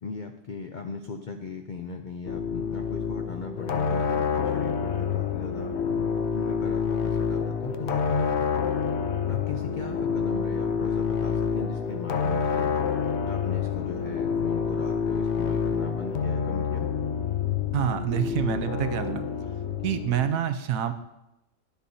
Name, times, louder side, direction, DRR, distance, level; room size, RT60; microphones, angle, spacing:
voice 1, 0.0-5.8 6.3-8.4 9.3-12.8 13.3-16.9, left 5 dB, 75° left, 5 dB, 0.4 m, -38 dB
sound 1, 2.2-20.3, left 6 dB, 60° left, 0.8 m, -28 dB
voice 2, 17.7-19.3 19.8-20.9, right 9 dB, 75° right, 9 dB, 1.0 m, -27 dB
11.0 x 8.3 x 2.7 m, 0.92 s
omnidirectional pair, 1.5 m